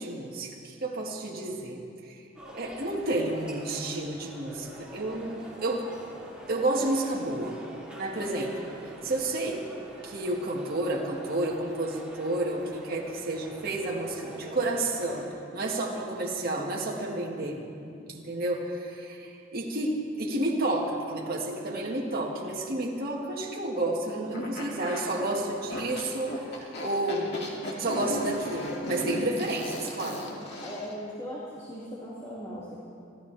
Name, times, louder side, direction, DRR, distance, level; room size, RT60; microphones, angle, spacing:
voice 1, 0.0-2.3 2.5-5.9 6.5-7.5 8.0-8.5 9.0-9.6 10.0-15.2 15.5-27.3 27.8-30.2, right 2 dB, 50° right, -2 dB, 1.9 m, -31 dB
sound 1, 2.3-15.3, equal, 5° right, 3.2 m, -46 dB
sound 2, 24.3-30.9, left 1 dB, 60° left, 2.4 m, -36 dB
voice 2, 30.6-32.8, equal, 15° left, -9 dB, 2.4 m, -39 dB
27.0 x 14.0 x 3.4 m, 2.5 s
head